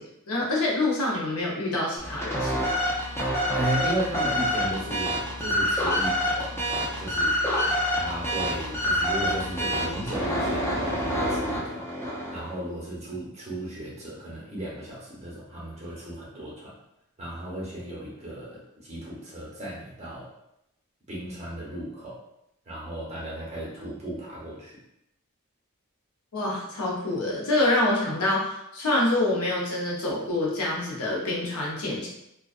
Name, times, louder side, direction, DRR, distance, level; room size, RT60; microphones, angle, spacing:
voice 1, 0.0-2.8 26.3-32.1, left 2 dB, 75° left, -4 dB, 0.7 m, -26 dB
sound 1, 2.0-12.5, equal, 10° left, 0.3 m, -27 dB
voice 2, 3.5-7.3 7.9-11.8 12.3-16.7 17.2-20.3 21.1-22.2 22.7-24.7, right 1 dB, 30° right, -7 dB, 0.8 m, -35 dB
2.4 x 2.2 x 2.4 m, 0.83 s
head